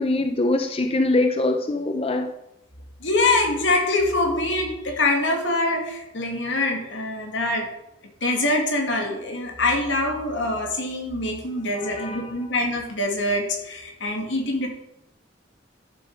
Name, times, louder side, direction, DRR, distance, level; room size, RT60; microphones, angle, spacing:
voice 1, 0.0-2.3 11.8-12.3, left 2 dB, 30° left, 5 dB, 0.6 m, -23 dB
voice 2, 3.0-7.7 8.2-14.7, left 2 dB, 75° left, 2 dB, 2.4 m, -24 dB
11.5 x 7.6 x 4.8 m, 0.87 s
head